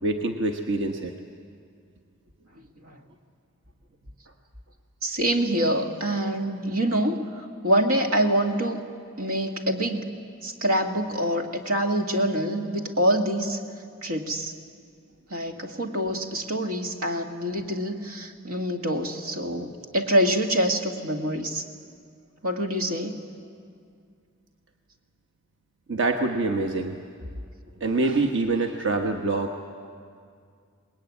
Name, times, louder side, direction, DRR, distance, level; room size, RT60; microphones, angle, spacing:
voice 1, 0.0-1.1 25.9-27.0 27.8-29.6, right 3 dB, 60° right, 3 dB, 1.3 m, -25 dB
voice 2, 5.0-8.8 9.2-10.1 10.4-13.6 14.0-14.5 15.3-21.6 22.4-23.2, right 1 dB, 85° right, 4 dB, 2.1 m, -25 dB
25.0 x 20.5 x 9.7 m, 2.2 s
head